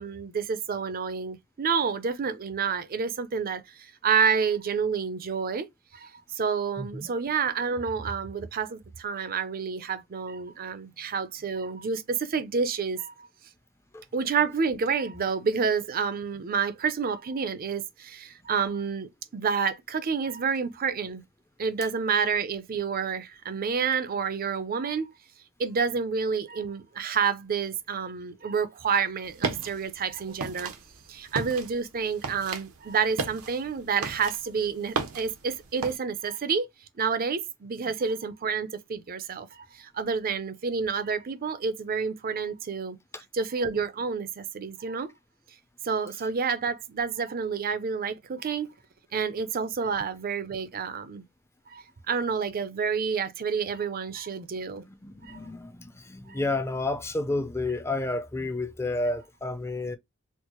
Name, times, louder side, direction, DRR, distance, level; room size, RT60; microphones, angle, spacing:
voice 1, 0.0-5.7 5.9-13.3 14.1-21.2 21.6-25.1 25.6-30.7 31.1-36.6 37.0-43.0 43.3-45.1 45.8-48.7 49.1-51.2 51.7-54.8 55.2-55.4 56.3-56.4, right 5 dB, 45° right, 0.5 m, -29 dB
voice 2, 6.8-7.1 13.9-14.0 43.1-43.2 54.8-60.0, left 2 dB, 10° left, 0.5 m, -31 dB
sound 1, 29.2-35.9, right 4 dB, 80° right, 0.8 m, -35 dB
4.4 x 2.0 x 2.9 m
head